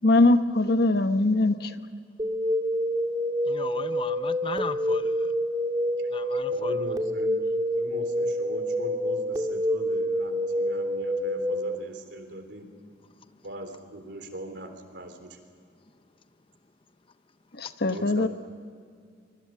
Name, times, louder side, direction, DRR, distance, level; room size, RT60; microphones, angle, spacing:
voice 1, 0.0-1.7 17.6-18.3, left 2 dB, 60° left, 10 dB, 1.1 m, -21 dB
sound 1, 2.2-11.8, equal, 20° right, 1.9 m, -27 dB
voice 2, 3.5-5.3 6.1-6.8, left 4 dB, 30° left, 12 dB, 0.7 m, -36 dB
voice 3, 6.5-7.3 7.7-12.6 13.4-15.4 17.9-18.3, right 1 dB, 75° right, 7 dB, 3.5 m, -39 dB
24.5 x 23.5 x 7.5 m, 2.2 s
head